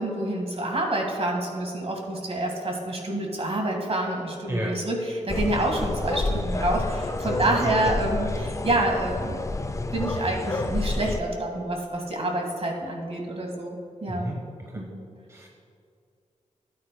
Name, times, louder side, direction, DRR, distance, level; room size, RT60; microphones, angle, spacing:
voice 1, 0.0-9.4 9.9-14.3 14.8-15.0, right 1 dB, 50° right, 1 dB, 1.8 m, -28 dB
sound 1, 5.3-11.2, left 2 dB, 25° left, 0.4 m, -29 dB
voice 2, 7.6-8.0 14.1-14.8 15.3-15.5, equal, 20° right, -1 dB, 1.1 m, -32 dB
12.5 x 8.8 x 2.3 m, 2.4 s
cardioid pair, 50°, 13 cm